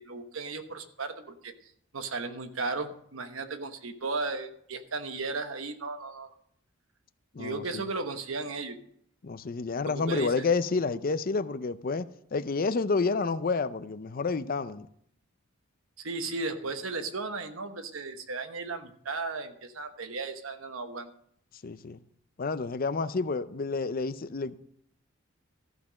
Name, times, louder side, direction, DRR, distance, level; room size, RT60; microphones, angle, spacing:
voice 1, 0.0-1.5 1.9-6.3 7.4-8.8 9.8-10.5 16.0-21.1, right 3 dB, 80° right, 1.1 m, -35 dB
voice 2, 7.3-7.8 9.2-14.9 21.6-22.0 22.4-24.6, left 4 dB, 45° left, 0.5 m, -29 dB
14.0 x 6.0 x 6.3 m
head